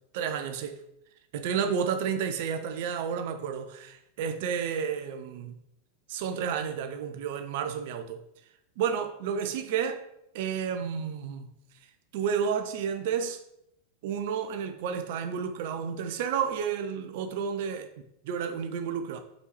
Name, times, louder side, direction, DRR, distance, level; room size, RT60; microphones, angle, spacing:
voice 1, 0.1-0.8 1.3-5.6 6.1-8.2 8.8-10.0 10.3-11.6 12.1-13.4 14.0-17.9 18.2-19.2, right 7 dB, 50° right, 0.7 m, -31 dB
5.4 x 4.3 x 4.5 m
figure-of-eight pair, 90°, 0 cm